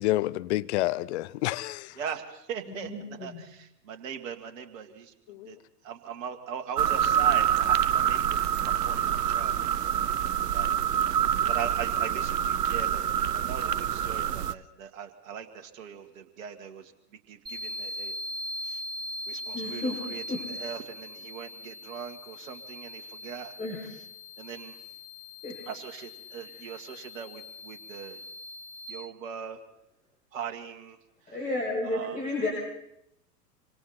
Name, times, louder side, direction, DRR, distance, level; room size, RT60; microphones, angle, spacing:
voice 1, 0.0-1.9 5.3-5.5, left 17 dB, 45° left, 0.7 m, -28 dB
voice 2, 2.0-2.9 3.2-5.1 5.5-5.6 5.8-9.7 10.5-10.8 11.5-16.9 17.3-18.1 18.6-18.8 19.3-20.2 20.5-23.5 24.4-24.8 25.7-28.2 28.9-29.6 30.3-31.0 31.8-32.2, right 8 dB, 55° right, 2.1 m, -40 dB
voice 3, 2.7-3.4 19.5-20.0 20.3-20.5 23.6-23.8 25.4-25.6 26.5-26.7 31.3-32.5, left 2 dB, 15° left, 6.9 m, -32 dB
sound 1, 6.8-14.5, right 10 dB, 75° right, 0.7 m, -26 dB
sound 2, 17.5-28.9, left 1 dB, 10° right, 4.3 m, -40 dB
25.5 x 25.0 x 4.3 m
figure-of-eight pair, 95°, 48 cm